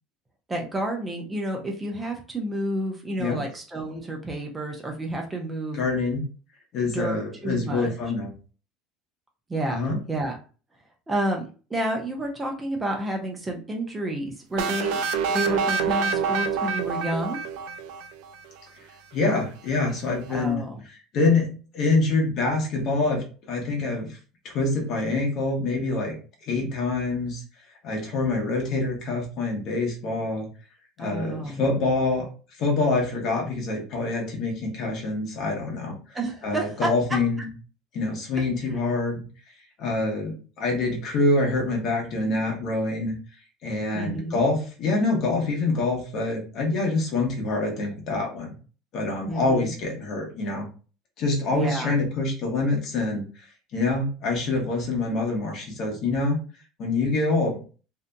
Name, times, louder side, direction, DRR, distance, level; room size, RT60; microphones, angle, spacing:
voice 1, 0.5-5.8 6.9-7.2 7.4-7.9 9.5-9.8 10.1-10.3 11.1-15.0 15.3-17.4 20.3-20.8 31.0-31.8 36.1-36.9 43.9-44.4 49.3-49.7 51.5-52.0, right 1 dB, 20° right, 1 dB, 0.7 m, -30 dB
voice 2, 5.7-6.2 6.7-8.3 9.7-10.0 19.1-20.6 21.1-24.1 24.4-26.1 26.4-27.4 27.8-30.5 31.0-32.2 32.6-35.9 36.4-37.5 37.9-39.2 39.8-43.1 43.6-48.5 48.9-50.7 51.2-53.2 53.7-56.4 56.8-57.6, left 3 dB, 55° left, 0 dB, 1.1 m, -25 dB
sound 1, 14.6-18.4, right 5 dB, 70° right, 0.3 m, -26 dB
2.8 x 2.4 x 2.2 m, 0.37 s
supercardioid pair, 90°, 0 cm